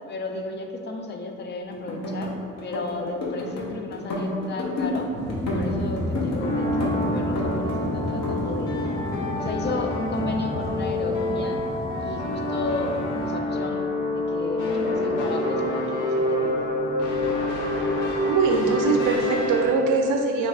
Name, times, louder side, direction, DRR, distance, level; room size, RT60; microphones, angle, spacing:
voice 1, 0.0-5.1 5.5-8.8 9.3-11.6 12.0-16.8, left 3 dB, 35° left, 3 dB, 0.4 m, -33 dB
sound 1, 1.7-2.3 2.6-3.6 3.9-5.0 5.3-6.4 6.8-7.8 8.1-9.2, left 2 dB, 60° left, 0.9 m, -30 dB
sound 2, 5.1-13.3, left 1 dB, 10° left, 0.8 m, -31 dB
sound 3, 6.4-19.7, left 1 dB, 85° left, 0.6 m, -27 dB
voice 2, 18.3-20.5, right 4 dB, 85° right, 3 dB, 0.6 m, -22 dB
3.2 x 3.0 x 3.9 m, 2.4 s
cardioid pair, 90°, 30 cm